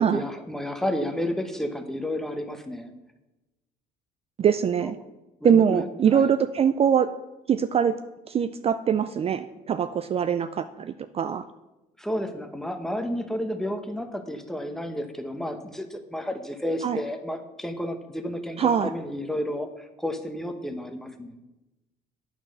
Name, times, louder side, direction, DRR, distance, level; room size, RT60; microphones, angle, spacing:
voice 1, 0.0-2.9 4.8-4.9 5.4-6.3 12.0-21.4, left 1 dB, ahead, 7 dB, 1.1 m, -31 dB
voice 2, 4.4-5.0 5.4-7.1 7.5-7.9 8.3-11.5 16.8-17.0 18.6-18.9, right 8 dB, 35° right, 11 dB, 0.4 m, -23 dB
9.0 x 6.2 x 6.4 m, 1.0 s
cardioid pair, 110°, 17 cm